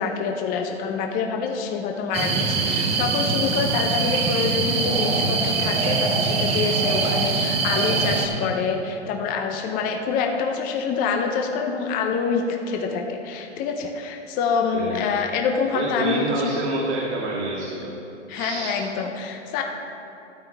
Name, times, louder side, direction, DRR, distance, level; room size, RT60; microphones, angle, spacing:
voice 1, 0.0-16.5 18.3-19.6, left 5 dB, 25° left, 2 dB, 0.7 m, -26 dB
sound 1, 2.1-8.3, right 4 dB, 15° right, 0.8 m, -23 dB
voice 2, 14.7-15.2 15.7-17.9 18.3-18.8, right 2 dB, 65° right, -6 dB, 2.6 m, -27 dB
13.0 x 8.7 x 3.4 m, 2.8 s
hypercardioid pair, 130°, 36 cm